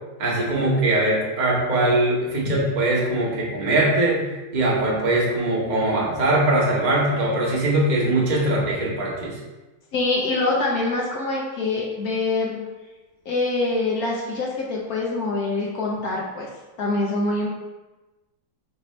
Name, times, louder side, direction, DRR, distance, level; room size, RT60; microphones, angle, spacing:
voice 1, 0.2-4.3 4.5-9.4, right 1 dB, 35° right, -5 dB, 0.7 m, -21 dB
voice 2, 9.9-12.7 13.3-16.5 16.8-17.5, left 2 dB, 75° left, -3 dB, 0.8 m, -24 dB
6.0 x 2.6 x 3.1 m, 1.1 s
omnidirectional pair, 2.4 m